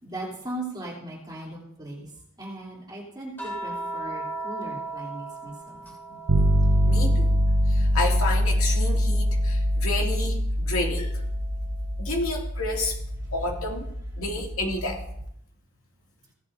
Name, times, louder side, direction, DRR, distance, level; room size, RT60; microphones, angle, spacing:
voice 1, 0.0-2.1 2.4-5.8, right 1 dB, 20° right, -4 dB, 3.3 m, -38 dB
sound 1, 3.4-7.9 8.2-9.9 11.4-11.5, right 2 dB, 10° left, 3.5 m, -38 dB
voice 2, 5.9-7.3 7.6-11.2 12.0-13.0 13.3-15.0, left 2 dB, 65° left, 0 dB, 2.5 m, -31 dB
sound 2, 6.3-15.3, equal, 90° right, 1.0 m, -24 dB
16.5 x 11.5 x 2.7 m, 0.73 s
head